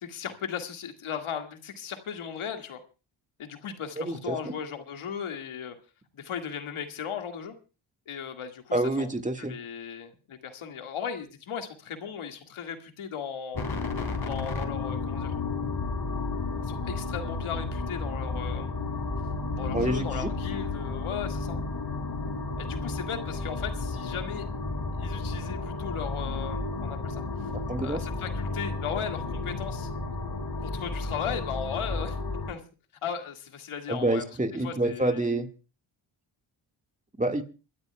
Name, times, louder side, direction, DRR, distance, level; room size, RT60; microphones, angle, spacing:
voice 1, 0.0-2.8 3.4-5.8 6.1-7.5 8.1-9.1 9.4-13.7 14.3-15.3 16.6-18.8 19.5-21.6 22.6-24.5 24.9-27.2 27.8-29.9 30.6-32.2 32.5-32.6 33.0-34.2 34.6-35.3, left 7 dB, 75° left, 5 dB, 2.1 m, -37 dB
voice 2, 4.0-4.4 8.7-9.5 19.7-20.3 27.7-28.0 33.9-35.5 37.2-37.4, right 2 dB, 15° right, 5 dB, 1.8 m, -27 dB
sound 1, 13.5-32.5, left 3 dB, 50° left, 3.8 m, -32 dB
27.5 x 12.5 x 2.3 m, 0.34 s
cardioid pair, 55°, 49 cm